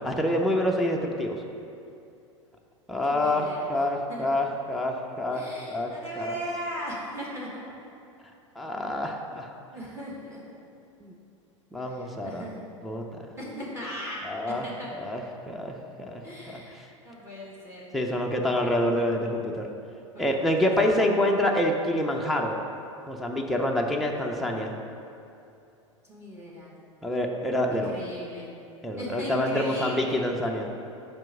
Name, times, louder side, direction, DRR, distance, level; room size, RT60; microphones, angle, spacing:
voice 1, 0.0-1.4 2.9-6.4 8.6-9.5 11.0-11.1 11.7-12.5 12.8-13.2 14.2-14.7 15.0-16.6 17.9-19.7 20.2-22.6 23.1-24.7 27.0-27.9 28.8-30.7, left 1 dB, ahead, 0 dB, 0.5 m, -27 dB
voice 2, 3.0-3.7 4.1-4.2 5.3-7.5 9.7-10.4 11.8-12.6 13.4-14.9 16.2-17.8 20.1-20.7 26.1-26.8 27.7-28.5 29.0-30.2, equal, 15° right, -5 dB, 1.3 m, -38 dB
5.3 x 4.5 x 6.0 m, 2.7 s
figure-of-eight pair, 90°, 16 cm